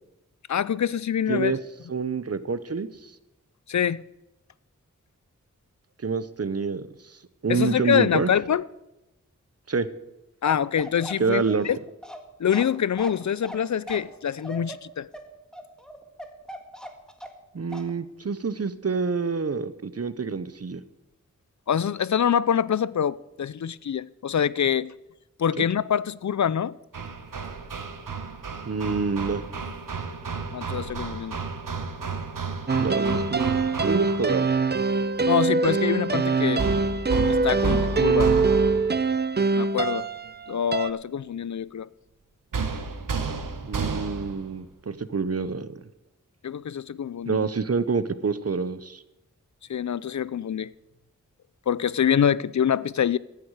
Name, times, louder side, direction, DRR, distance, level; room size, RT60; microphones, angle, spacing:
voice 1, 0.5-1.5 3.7-4.0 7.5-8.6 10.4-11.8 12.4-15.1 21.7-24.9 25.4-26.7 30.5-31.4 35.2-36.6 37.3-38.3 39.6-40.1 40.5-41.9 46.4-47.5 49.7-50.7 51.7-53.2, left 8 dB, 65° left, 0.5 m, -25 dB
voice 2, 1.3-1.6 1.9-3.1 6.0-7.2 7.4-8.3 9.7-9.9 11.2-11.7 17.5-20.8 25.6-25.7 28.7-29.4 32.8-33.6 33.8-34.5 43.6-45.8 47.3-49.0, right 5 dB, 50° right, 0.9 m, -27 dB
Bark, 10.4-17.4 17.7-17.9, equal, ahead, 1.8 m, -40 dB
Hammer, 26.9-34.4 36.6-39.0 42.5-44.5, right 4 dB, 90° right, 1.3 m, -31 dB
sound 1, 32.7-40.9, right 4 dB, 35° right, 0.6 m, -23 dB
15.0 x 10.5 x 4.8 m
wide cardioid pair, 60°, 31 cm